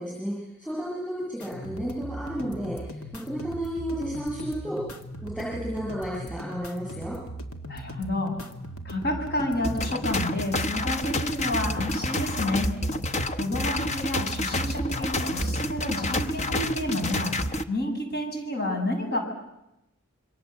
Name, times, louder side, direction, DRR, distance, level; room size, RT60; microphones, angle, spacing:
voice 1, 0.0-4.8 5.2-7.2, equal, 5° left, -5 dB, 6.8 m, -32 dB
sound 1, 1.4-17.4, equal, 85° left, 2.1 m, -39 dB
voice 2, 7.7-8.4 8.8-12.7 13.3-19.2, left 1 dB, 50° left, 3 dB, 6.6 m, -30 dB
sound 2, 9.6-17.6, left 1 dB, 30° left, 1.0 m, -29 dB
27.0 x 24.0 x 7.8 m, 0.91 s
head